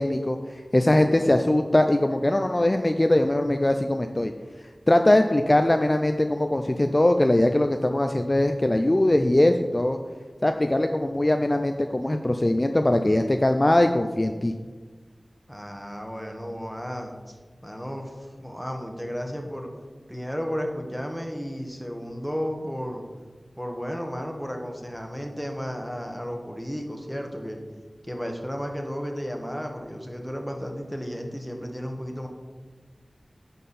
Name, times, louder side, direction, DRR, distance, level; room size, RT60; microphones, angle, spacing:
voice 1, 0.0-4.3 4.9-10.0 10.4-14.5, left 1 dB, 30° left, 6 dB, 0.4 m, -21 dB
voice 2, 0.9-1.3 15.5-17.4 17.6-19.7 20.1-23.0 23.6-27.6 28.0-32.3, equal, ahead, 2 dB, 1.2 m, -33 dB
9.4 x 5.4 x 4.2 m, 1.4 s
wide cardioid pair, 50°, 0 cm